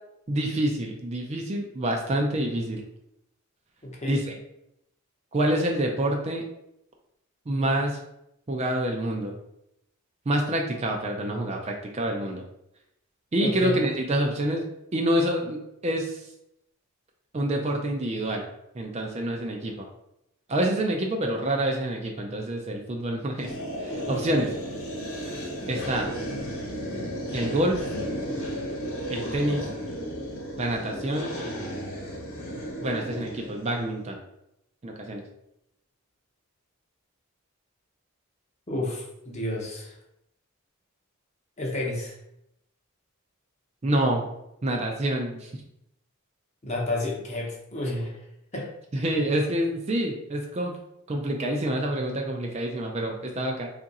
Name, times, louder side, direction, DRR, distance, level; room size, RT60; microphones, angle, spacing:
voice 1, 0.3-2.8 4.1-4.3 5.3-6.4 7.5-8.0 8.5-9.4 10.3-12.4 13.3-14.7 14.9-16.3 17.3-18.5 18.7-19.9 20.5-23.5 23.8-24.5 25.7-26.1 27.3-27.8 29.1-29.6 30.6-31.3 32.8-34.2 34.8-35.2 43.8-44.2 44.6-45.5 48.9-50.8 51.1-53.7, right 1 dB, 30° right, 1 dB, 0.4 m, -27 dB
voice 2, 3.8-4.2 13.4-13.8 38.7-39.9 41.6-42.1 46.6-48.2 48.5-48.7 49.0-49.1, left 2 dB, 30° left, -2 dB, 0.8 m, -30 dB
sound 1, 23.4-33.9, equal, 70° left, 1.0 m, -34 dB
3.6 x 2.5 x 4.0 m, 0.82 s
head